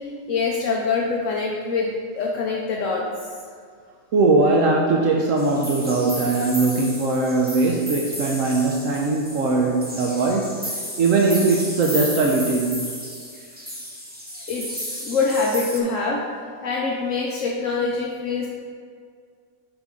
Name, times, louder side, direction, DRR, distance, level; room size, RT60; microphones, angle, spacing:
voice 1, 0.0-3.0 14.5-16.2 16.6-18.5, left 4 dB, 65° left, -2 dB, 1.0 m, -24 dB
voice 2, 4.1-10.6 11.0-12.8, right 3 dB, 70° right, -1 dB, 1.1 m, -20 dB
sound 1, 5.4-15.8, equal, 10° right, 0.9 m, -33 dB
8.2 x 5.5 x 3.7 m, 2.1 s
omnidirectional pair, 1.5 m